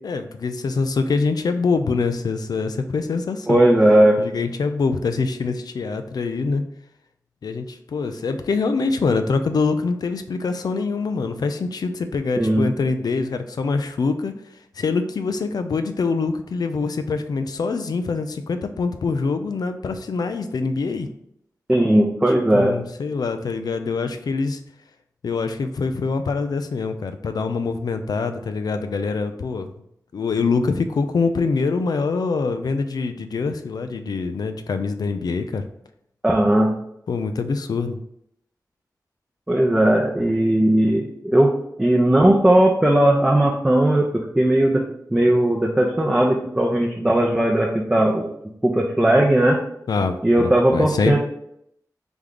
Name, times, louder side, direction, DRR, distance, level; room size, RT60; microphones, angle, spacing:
voice 1, 0.0-3.7 4.2-6.6 7.4-14.3 14.7-21.1 22.5-24.6 25.2-29.7 30.1-35.7 37.1-38.0 49.9-51.2, left 4 dB, 75° left, 8 dB, 0.4 m, -24 dB
voice 2, 3.5-4.2 12.4-12.7 21.7-22.7 36.2-36.7 39.5-41.5 41.8-44.8 45.1-48.3 48.6-49.6 50.2-51.2, right 1 dB, 15° right, -2 dB, 0.6 m, -17 dB
3.4 x 3.1 x 3.8 m, 0.74 s
wide cardioid pair, 65°, 7 cm